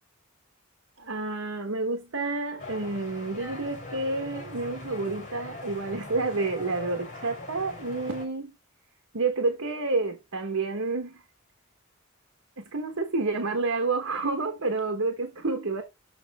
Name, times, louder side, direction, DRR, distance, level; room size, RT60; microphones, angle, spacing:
voice 1, 1.0-8.5 9.1-11.2 12.6-15.8, right 3 dB, 85° right, 1.3 m, -29 dB
sound 1, 2.6-8.2, left 2 dB, 40° left, 3.8 m, -41 dB
6.8 x 6.2 x 3.6 m
head